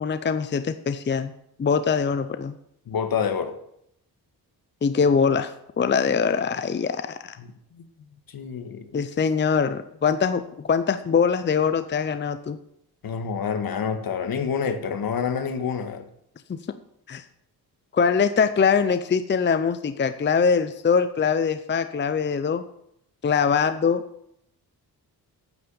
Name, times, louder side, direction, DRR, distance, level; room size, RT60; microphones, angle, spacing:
voice 1, 0.0-1.3 1.6-2.5 4.8-7.4 8.9-10.4 10.7-12.6 16.5-16.6 17.1-17.2 17.9-22.6 23.2-24.0, left 6 dB, 30° left, 11 dB, 0.6 m, -23 dB
voice 2, 2.9-3.5 7.4-7.5 8.3-8.8 13.0-16.0, left 6 dB, 65° left, 8 dB, 1.6 m, -27 dB
9.2 x 8.8 x 7.0 m, 0.75 s
cardioid pair, 100°, 39 cm